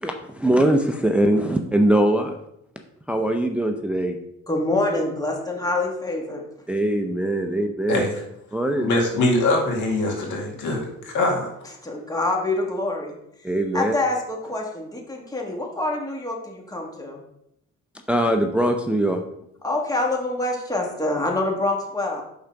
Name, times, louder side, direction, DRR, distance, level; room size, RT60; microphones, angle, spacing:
voice 1, 0.0-2.4 3.1-4.2 6.7-8.0 8.5-8.9 13.4-13.9 18.1-19.2, right 1 dB, 5° right, 4 dB, 0.5 m, -21 dB
voice 2, 4.5-6.4 11.8-13.1 13.7-17.2 19.6-22.2, left 2 dB, 10° left, 1 dB, 1.5 m, -26 dB
voice 3, 7.9-8.2 8.8-11.5, left 2 dB, 80° left, -1 dB, 2.0 m, -23 dB
5.6 x 3.8 x 5.7 m, 0.79 s
cardioid pair, 90°, 30 cm